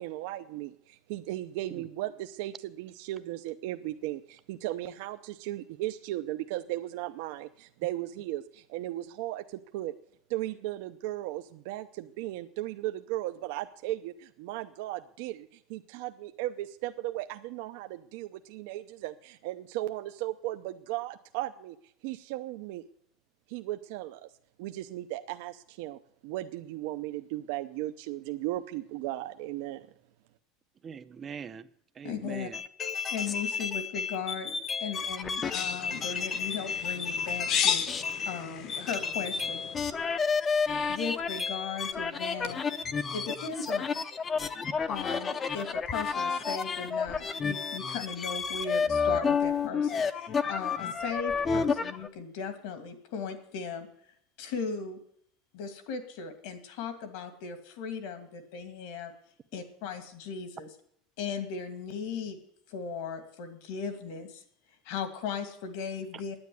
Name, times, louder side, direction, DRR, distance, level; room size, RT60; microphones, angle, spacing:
voice 1, 0.0-9.9 10.3-21.8 22.0-22.8 23.5-24.3 24.6-29.9, right 15 dB, 65° right, 7 dB, 0.7 m, -36 dB
voice 2, 30.8-32.6 66.1-66.2, right 7 dB, 20° right, 14 dB, 0.6 m, -43 dB
voice 3, 32.0-32.5 33.1-34.5 34.8-37.8 38.3-39.6 40.9-42.6 43.1-43.9 44.9-53.9 54.4-55.0 55.5-59.1 59.5-60.7 61.2-62.4 62.7-64.4 64.8-66.4, left 6 dB, 65° left, 8 dB, 2.4 m, -37 dB
sound 1, 32.5-38.4 38.7-52.1, left 5 dB, 20° left, 0.7 m, -31 dB
sound 2, 35.5-40.0, left 8 dB, 40° left, 1.0 m, -34 dB
9.7 x 9.4 x 9.6 m, 0.69 s
supercardioid pair, 165°, 0 cm